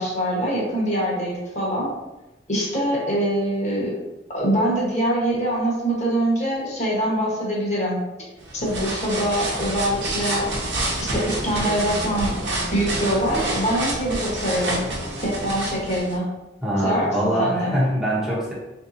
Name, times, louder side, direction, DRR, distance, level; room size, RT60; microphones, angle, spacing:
voice 1, 0.0-1.9 2.5-4.0 4.3-8.0 8.5-10.5 11.0-12.4 12.7-14.8 15.2-16.3 16.8-17.7, right 1 dB, 40° left, -4 dB, 1.0 m, -24 dB
sound 1, 8.4-16.2, right 2 dB, 70° right, 0.8 m, -28 dB
voice 2, 16.6-18.5, right 1 dB, 5° right, -8 dB, 0.7 m, -23 dB
3.5 x 2.7 x 2.5 m, 1.0 s
head